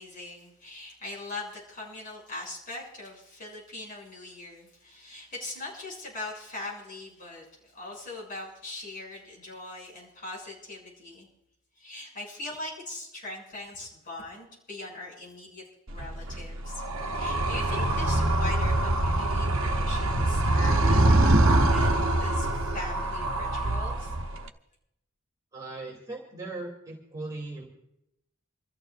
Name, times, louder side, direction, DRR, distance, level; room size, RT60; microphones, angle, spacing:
voice 1, 0.0-11.3 11.8-16.8 17.1-24.1, left 2 dB, 40° left, -4 dB, 7.1 m, -41 dB
Animal, 15.9-24.5, right 1 dB, 60° right, 1.0 m, -24 dB
voice 2, 25.5-27.7, right 2 dB, 15° right, -2 dB, 2.8 m, -38 dB
28.5 x 14.0 x 2.5 m, 0.84 s
head